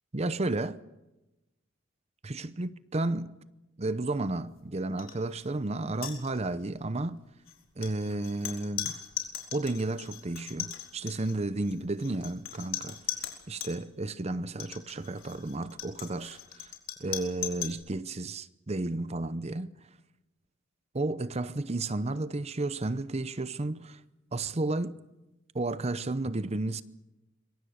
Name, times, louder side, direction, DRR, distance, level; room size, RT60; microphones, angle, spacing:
voice 1, 0.1-0.8 2.2-3.4 3.8-7.2 7.8-9.0 9.5-13.0 13.5-16.7 17.0-19.7 20.9-24.0 24.3-25.0 25.5-26.8, right 2 dB, 30° right, 0.7 m, -32 dB
sound 1, 5.0-5.2 5.4-5.6 5.9-6.7 7.5-13.8 14.5-17.8, left 11 dB, 90° left, 4.5 m, -39 dB
26.5 x 22.5 x 6.5 m
head